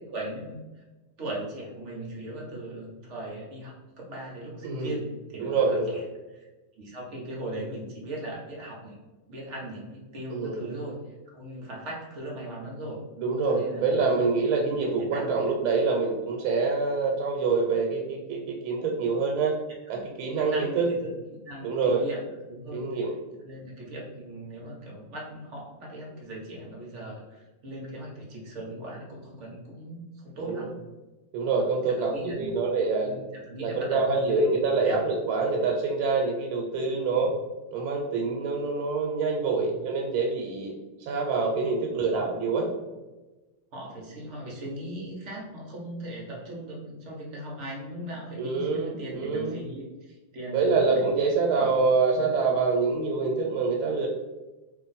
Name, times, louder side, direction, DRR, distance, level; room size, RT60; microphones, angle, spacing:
voice 1, 0.1-0.8 1.2-5.8 6.3-6.5 6.8-9.0 9.3-11.0 11.3-13.0 13.5-14.3 14.6-15.5 19.9-20.0 20.3-21.1 21.4-22.2 22.5-22.9 23.4-30.8 32.0-32.6 33.0-34.6 34.8-35.0 37.2-37.3 39.6-39.7 41.9-42.2 43.7-51.1 51.5-51.7 52.2-52.3, right 1 dB, 60° right, -3 dB, 0.7 m, -38 dB
voice 2, 4.6-4.9 5.4-6.0 10.3-10.7 13.2-19.6 19.9-20.9 21.6-22.0 22.7-23.1 30.4-30.7 31.3-33.2 33.6-37.3 37.7-40.7 41.0-42.7 48.4-49.6 50.5-54.1, right 4 dB, 85° right, 0 dB, 1.4 m, -26 dB
3.0 x 2.6 x 3.9 m, 1.1 s
omnidirectional pair, 2.2 m